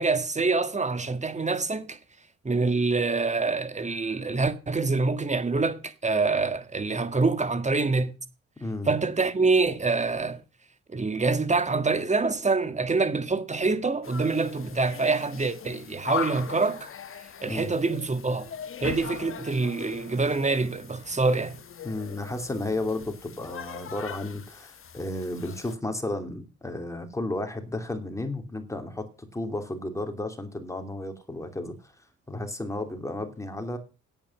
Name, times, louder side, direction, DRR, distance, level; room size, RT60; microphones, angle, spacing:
voice 1, 0.0-2.0 2.4-8.2 8.9-10.4 10.9-16.9 17.4-18.5 18.8-21.6, right 3 dB, 25° right, 1.7 m, -26 dB
voice 2, 8.6-8.9 17.4-17.7 21.8-31.9 32.3-33.8, left 2 dB, 10° left, 2.8 m, -33 dB
sound 1, 14.0-25.7, left 8 dB, 45° left, 1.2 m, -40 dB
9.1 x 8.6 x 7.2 m
cardioid pair, 90°, 30 cm